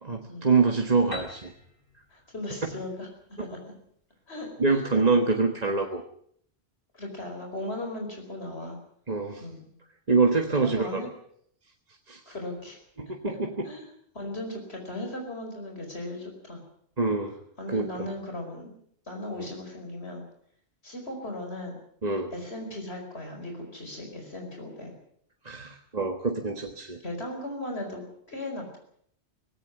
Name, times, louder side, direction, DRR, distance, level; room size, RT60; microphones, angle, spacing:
voice 1, 0.0-1.5 3.4-3.5 4.6-6.0 9.1-9.4 10.1-11.0 12.1-12.3 13.0-13.6 17.0-17.3 17.7-18.0 22.0-22.3 25.4-27.0, right 4 dB, 40° right, 3 dB, 1.6 m, -25 dB
Piano, 1.1-4.8, left 2 dB, 55° left, 4.5 m, -45 dB
voice 2, 2.1-3.1 3.5-3.6 4.3-4.8 6.9-8.8 9.4-9.7 10.6-11.1 12.3-12.8 13.6-13.8 14.1-16.6 17.6-18.7 19.1-20.2 20.8-21.7 22.3-24.9 27.0-28.8, left 1 dB, 75° left, 2 dB, 5.2 m, -37 dB
19.0 x 17.0 x 9.4 m, 0.67 s
omnidirectional pair, 1.1 m